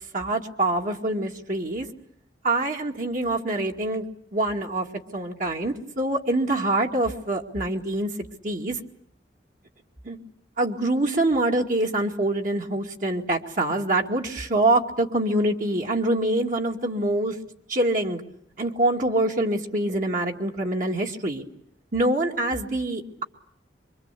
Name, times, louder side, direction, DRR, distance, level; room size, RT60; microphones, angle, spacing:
voice 1, 0.1-1.9 2.4-4.0 4.3-4.9 5.1-8.1 8.4-8.8 10.0-10.2 10.6-17.4 17.7-18.2 18.6-21.4 21.9-23.2, right 1 dB, 45° right, 1 dB, 2.3 m, -25 dB
25.5 x 24.5 x 8.4 m, 0.71 s
head